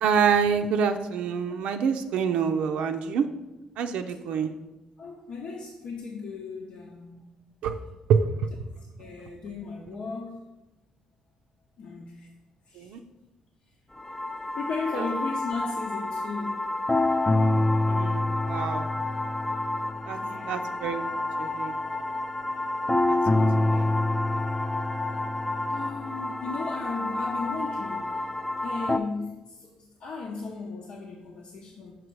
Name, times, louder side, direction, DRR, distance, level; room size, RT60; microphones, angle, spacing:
voice 1, 0.0-3.2 3.8-4.5 7.6-7.8 8.1-8.2 12.8-13.0 17.9-18.9 20.1-20.2 20.5-21.0 21.4-21.7 23.1-23.2 23.7-23.9, right 7 dB, 85° right, 5 dB, 0.4 m, -26 dB
voice 2, 5.0-7.4 8.8-10.5 11.8-12.3 12.7-13.0 14.5-16.7 20.2-20.7 21.2-21.3 24.9-28.3 28.6-32.0, left 4 dB, 70° left, -1 dB, 0.9 m, -36 dB
sound 1, 14.0-29.0, left 2 dB, 15° left, 0.4 m, -27 dB
6.0 x 5.1 x 4.6 m, 1.0 s
cardioid pair, 90°, 2 cm